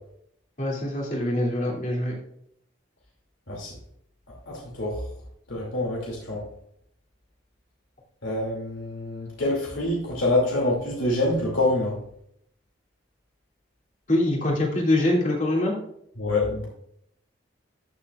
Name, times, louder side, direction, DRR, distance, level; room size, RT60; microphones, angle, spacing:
voice 1, 0.6-2.1 14.1-15.8, left 1 dB, 40° left, -2 dB, 2.6 m, -24 dB
voice 2, 4.5-5.0 5.5-6.4 8.2-11.9 16.2-16.7, left 2 dB, 80° left, -2 dB, 2.6 m, -26 dB
13.5 x 7.0 x 2.4 m, 0.70 s
head